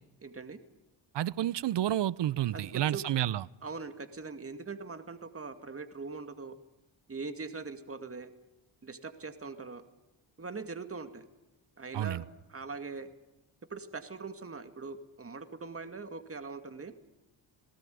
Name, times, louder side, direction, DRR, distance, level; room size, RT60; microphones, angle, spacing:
voice 1, 0.2-0.6 2.5-3.0 3.6-6.6 7.1-8.3 8.8-9.8 10.4-11.3 11.8-12.2 12.5-13.1 13.7-16.9, right 4 dB, 25° right, 9 dB, 2.2 m, -41 dB
voice 2, 1.1-3.4 11.9-12.2, right 12 dB, 55° right, 22 dB, 0.8 m, -30 dB
19.0 x 18.5 x 9.5 m, 1.0 s
supercardioid pair, 55°, 49 cm